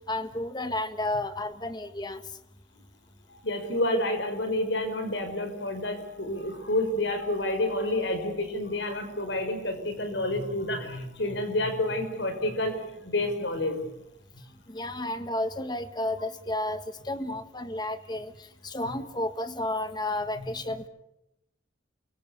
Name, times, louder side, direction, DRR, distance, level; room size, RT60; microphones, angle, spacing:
voice 1, 0.1-2.2 14.7-18.3 18.6-20.9, left 1 dB, 20° left, 10 dB, 1.5 m, -32 dB
voice 2, 3.3-13.9 20.4-20.5, left 1 dB, 75° left, 7 dB, 5.4 m, -29 dB
28.5 x 23.5 x 7.0 m, 0.87 s
head